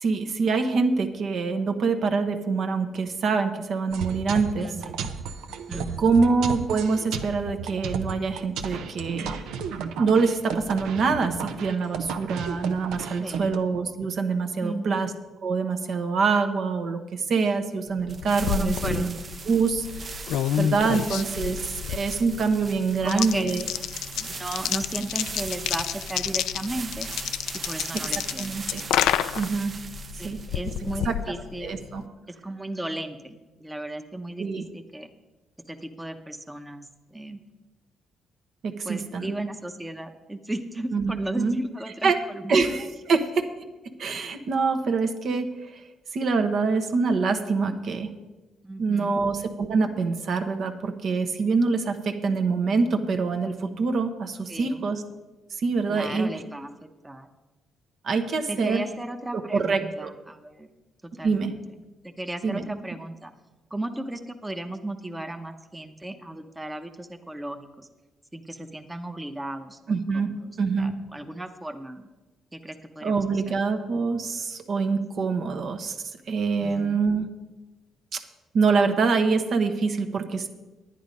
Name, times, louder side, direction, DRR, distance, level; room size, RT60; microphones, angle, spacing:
voice 1, 0.0-4.7 5.7-9.4 10.0-15.1 15.4-19.2 19.4-21.6 21.9-23.6 27.9-28.0 28.4-28.8 29.3-29.7 30.2-30.4 31.0-31.2 31.6-32.0 34.4-34.6 38.6-39.3 40.9-41.6 42.0-42.2 42.5-43.5 44.0-45.8 46.1-48.1 48.8-55.0 55.6-56.4 58.0-58.8 59.3-60.1 61.2-61.5 62.4-62.6 69.9-70.9 73.0-76.0 76.3-77.3 78.1-78.2 78.5-80.5, right 4 dB, 60° right, 6 dB, 1.1 m, -25 dB
sound 1, 3.9-13.6, right 6 dB, 90° right, 0.7 m, -34 dB
voice 2, 4.6-5.1 5.7-6.1 13.2-13.5 14.6-15.0 18.6-19.1 20.9-21.2 23.0-23.5 24.2-27.1 27.7-28.6 30.2-31.8 32.3-35.1 35.7-37.4 38.8-42.5 48.6-49.2 54.5-54.9 55.9-57.3 58.5-60.7 61.1-61.6 62.0-63.3 63.7-67.9 68.3-72.1 72.5-73.4 76.6-77.0, right 1 dB, 10° right, 5 dB, 0.8 m, -35 dB
sound 2, 18.0-32.0, left 10 dB, 85° left, 0.3 m, -30 dB
sound 3, 18.1-31.2, right 4 dB, 40° right, 0.6 m, -39 dB
10.0 x 10.0 x 5.3 m, 1.1 s
cardioid pair, 90°, 0 cm